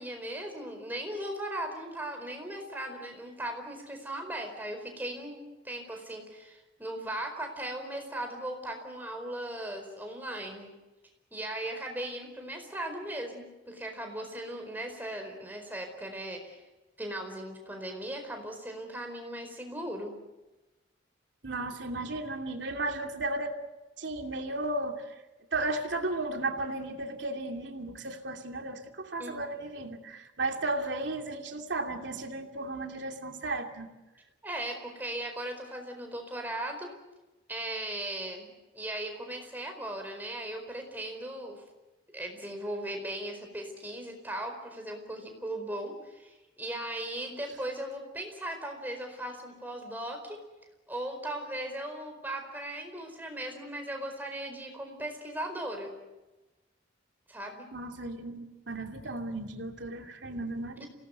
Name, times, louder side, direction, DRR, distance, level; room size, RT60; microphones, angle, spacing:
voice 1, 0.0-10.7 11.3-16.6 17.0-20.1 29.2-29.4 34.4-36.9 37.5-41.6 42.1-50.4 50.9-55.9 57.3-57.7 60.8-60.9, right 1 dB, 10° right, 3 dB, 4.6 m, -38 dB
voice 2, 21.4-23.5 24.0-25.1 25.5-33.9 57.7-60.8, right 2 dB, 70° right, 4 dB, 2.7 m, -34 dB
27.5 x 18.5 x 8.1 m, 1.1 s
head